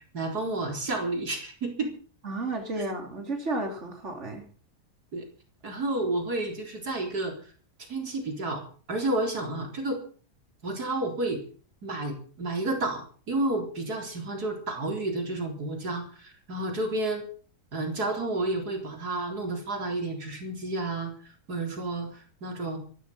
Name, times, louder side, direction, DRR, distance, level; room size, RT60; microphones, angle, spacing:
voice 1, 0.1-1.9 5.1-5.2 5.6-7.3 7.8-8.6 8.9-10.0 10.6-11.4 11.8-17.3 17.7-21.1 21.5-22.8, right 2 dB, 85° right, 2 dB, 4.5 m, -31 dB
voice 2, 2.2-4.4, right 2 dB, 45° right, 3 dB, 3.7 m, -32 dB
15.5 x 14.5 x 5.7 m, 0.41 s
omnidirectional pair, 1.6 m